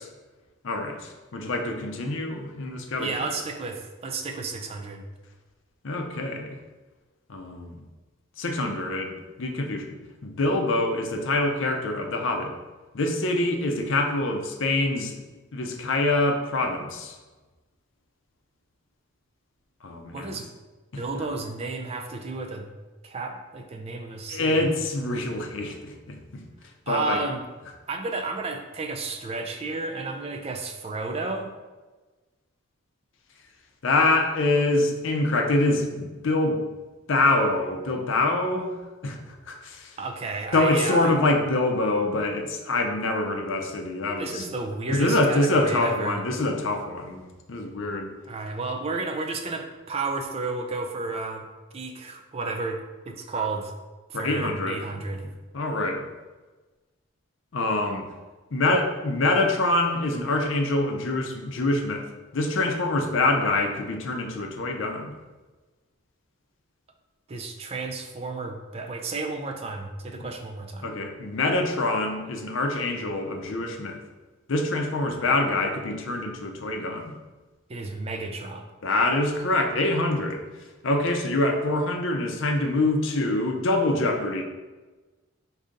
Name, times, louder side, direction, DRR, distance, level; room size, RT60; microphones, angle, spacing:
voice 1, 0.6-3.2 5.8-6.6 7.3-7.8 8.4-9.9 10.2-12.5 12.9-15.2 15.5-17.2 19.8-20.4 20.9-21.0 24.3-26.4 26.9-27.2 33.8-36.6 37.1-38.7 39.0-39.2 39.5-40.0 40.5-44.5 44.9-48.1 54.1-54.8 55.5-56.1 57.5-58.1 58.5-62.1 62.3-65.1 70.2-70.3 70.8-74.0 74.5-77.2 78.8-80.4 80.8-84.4, left 2 dB, 65° left, 3 dB, 0.5 m, -25 dB
voice 2, 3.0-5.1 20.1-20.5 21.0-22.7 23.0-24.7 26.9-27.4 27.9-31.5 40.0-41.1 44.2-46.2 48.2-51.4 51.7-53.7 54.1-55.3 67.3-70.9 77.7-78.7, right 3 dB, 30° right, 4 dB, 0.3 m, -32 dB
4.9 x 2.7 x 3.7 m, 1.2 s
head